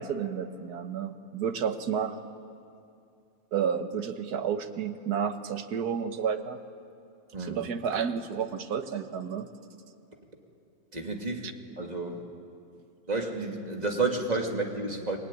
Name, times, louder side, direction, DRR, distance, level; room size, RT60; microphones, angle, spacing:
voice 1, 0.0-2.2 3.5-6.6 7.4-9.5 11.4-11.5, right 7 dB, 85° right, 8 dB, 1.7 m, -31 dB
voice 2, 7.3-7.6 10.9-11.5 11.8-12.2 13.1-15.2, right 3 dB, 25° right, 1 dB, 2.6 m, -31 dB
25.0 x 21.5 x 10.0 m, 2.5 s
omnidirectional pair, 1.6 m